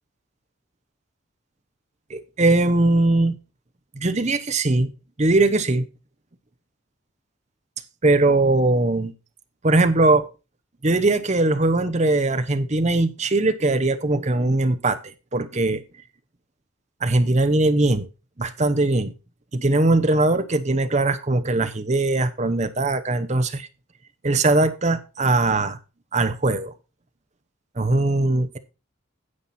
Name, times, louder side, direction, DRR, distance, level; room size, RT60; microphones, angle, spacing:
voice 1, 2.1-3.4 3.9-4.9 5.2-5.8 8.0-9.1 9.6-10.3 10.8-15.8 17.0-18.1 18.4-19.1 19.5-23.7 24.2-25.8 26.1-26.7 27.8-28.6, right 2 dB, 30° right, 0.8 m, -20 dB
9.7 x 7.4 x 4.2 m
head